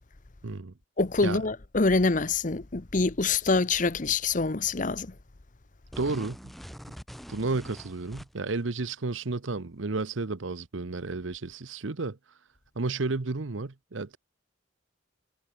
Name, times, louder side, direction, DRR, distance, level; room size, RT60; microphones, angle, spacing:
voice 1, 0.4-0.7 1.2-1.4 6.0-6.5 7.3-12.2 12.8-14.2, right 3 dB, 75° right, 0.9 m, -32 dB
voice 2, 1.0-5.1, left 3 dB, 40° left, 0.9 m, -25 dB
sound 1, 5.9-8.6, equal, ahead, 3.0 m, -44 dB
head